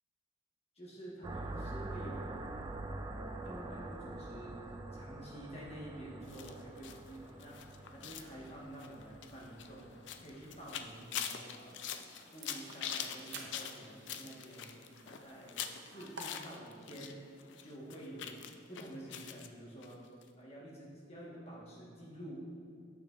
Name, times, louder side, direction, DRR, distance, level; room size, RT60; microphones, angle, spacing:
voice 1, 0.7-2.8 3.4-4.6 4.9-7.6 7.9-9.9 10.2-11.8 12.3-14.8 15.0-17.2 17.6-18.4 18.7-20.0 20.4-22.4, right 1 dB, 35° left, -5 dB, 1.4 m, -49 dB
sound 1, 1.2-10.8, right 2 dB, 20° right, 0.3 m, -45 dB
sound 2, 6.3-17.1 17.4-19.5 19.8-19.9 20.2-20.3, left 8 dB, 75° left, 0.4 m, -44 dB
sound 3, 10.4-16.2, right 4 dB, 70° right, 0.7 m, -54 dB
8.4 x 6.7 x 2.5 m, 2.4 s
head